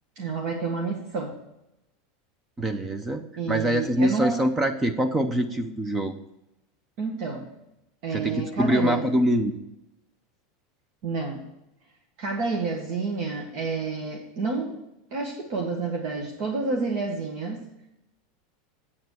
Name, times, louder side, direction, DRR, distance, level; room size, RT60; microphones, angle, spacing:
voice 1, 0.1-1.3 3.4-4.4 7.0-7.5 8.0-9.0 11.0-11.4 12.2-14.8 15.1-17.6, right 4 dB, 55° right, 0 dB, 1.7 m, -29 dB
voice 2, 2.6-6.1 8.1-9.6, equal, 15° right, 9 dB, 0.6 m, -24 dB
8.3 x 7.1 x 4.7 m, 0.87 s
supercardioid pair, 145°, 0 cm